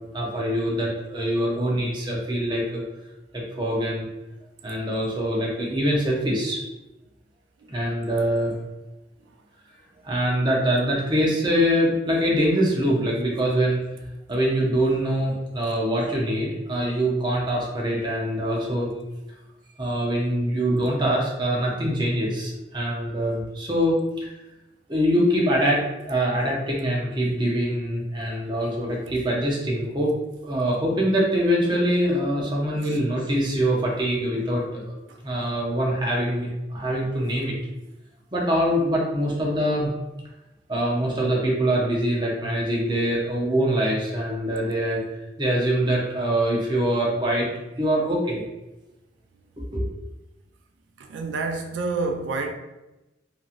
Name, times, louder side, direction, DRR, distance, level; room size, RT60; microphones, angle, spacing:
voice 1, 0.1-2.8 3.3-4.1 4.6-6.6 7.7-8.5 10.0-13.8 14.3-18.9 19.8-24.3 24.9-30.1 30.4-35.0 35.2-37.6 38.3-39.9 40.7-45.0 45.4-47.5 47.8-48.4 49.7-49.9, equal, 25° right, 0.6 m, -24 dB
voice 2, 51.0-52.5, right 3 dB, 90° right, 0.3 m, -29 dB
2.9 x 2.5 x 2.5 m
head